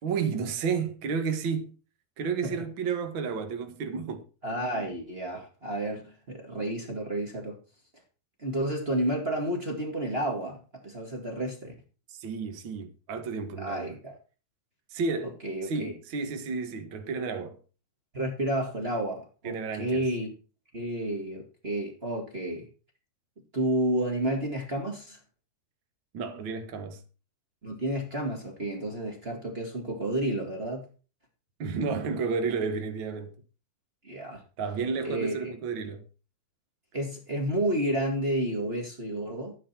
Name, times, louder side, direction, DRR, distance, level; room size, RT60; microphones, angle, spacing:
voice 1, 0.0-1.7 2.2-4.2 12.1-13.9 14.9-17.6 19.4-20.1 26.1-27.0 31.6-33.3 34.6-36.0, right 5 dB, 70° right, 1.1 m, -31 dB
voice 2, 4.4-7.6 8.4-10.6 10.8-11.7 13.6-14.1 15.2-15.9 18.1-20.3 20.7-22.7 23.5-25.2 27.6-30.9 34.0-34.4 35.0-35.5 36.9-39.5, right 1 dB, 25° right, 1.5 m, -31 dB
12.5 x 9.6 x 4.4 m
omnidirectional pair, 4.5 m